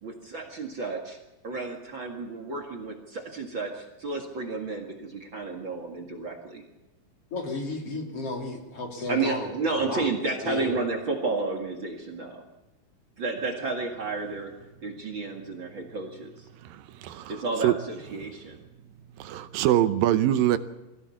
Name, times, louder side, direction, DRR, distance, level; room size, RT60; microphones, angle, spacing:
voice 1, 0.0-1.2 1.4-6.6 9.1-12.4 13.2-14.5 14.8-16.5 17.3-18.6, right 3 dB, 40° right, 1 dB, 2.3 m, -31 dB
voice 2, 7.3-10.1 10.4-10.8, left 3 dB, 40° left, 1 dB, 3.9 m, -33 dB
voice 3, 16.6-17.7 19.2-20.6, right 13 dB, 80° right, 11 dB, 2.5 m, -24 dB
22.0 x 16.5 x 7.2 m, 1.0 s
omnidirectional pair, 4.1 m